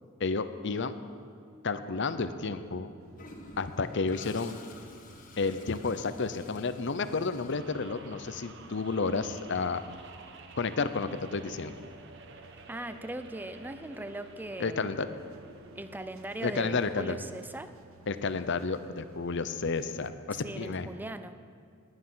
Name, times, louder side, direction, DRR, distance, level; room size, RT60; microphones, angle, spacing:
voice 1, 0.2-0.9 1.6-2.9 3.6-4.5 5.4-9.8 10.6-11.7 14.6-15.1 16.4-17.2 18.1-20.9, left 4 dB, 60° left, 11 dB, 0.7 m, -31 dB
sound 1, 3.0-20.1, right 4 dB, 80° right, 0.7 m, -58 dB
Toilet flush, 3.2-8.2, left 2 dB, 40° left, 1.5 m, -51 dB
sound 2, 7.5-16.1, right 3 dB, 60° right, 1.1 m, -51 dB
voice 2, 12.7-15.2 15.7-17.7 20.4-21.3, right 1 dB, 10° right, 10 dB, 0.5 m, -40 dB
19.0 x 10.0 x 5.7 m, 2.3 s
head